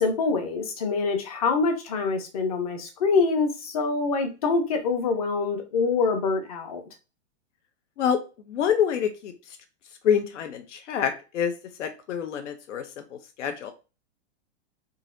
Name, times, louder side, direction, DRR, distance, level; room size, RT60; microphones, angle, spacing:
voice 1, 0.0-6.8, left 4 dB, 35° left, 6 dB, 0.6 m, -25 dB
voice 2, 8.5-9.3 10.0-11.5 11.8-13.7, left 8 dB, 85° left, 6 dB, 0.7 m, -26 dB
3.9 x 2.8 x 2.5 m, 0.31 s
supercardioid pair, 175°, 35 cm